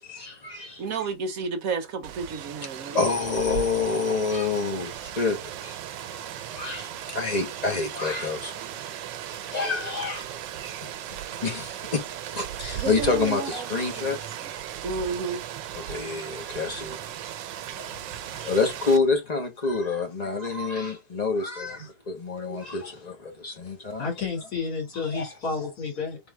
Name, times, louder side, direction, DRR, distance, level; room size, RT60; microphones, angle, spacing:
voice 1, 0.2-0.7 2.9-5.8 6.1-8.8 9.5-10.3 10.8-12.0 12.3-14.3 15.7-17.0 17.7-18.0 18.4-24.1 25.1-25.2, left 4 dB, 35° left, 0.7 m, -28 dB
voice 2, 0.8-3.0 12.7-13.7 14.0-14.1 14.8-15.4, right 4 dB, 60° right, 1.0 m, -31 dB
Rain, 2.0-19.0, right 11 dB, 90° right, 1.3 m, -37 dB
voice 3, 6.5-7.1 9.3-10.0 11.3-11.4 12.5-12.8 15.8-16.2 17.8-18.6 20.5-20.9 21.7-21.9 22.5-23.0 24.0-26.2, left 5 dB, 55° left, 2.6 m, -35 dB
3.7 x 3.1 x 3.3 m
omnidirectional pair, 2.0 m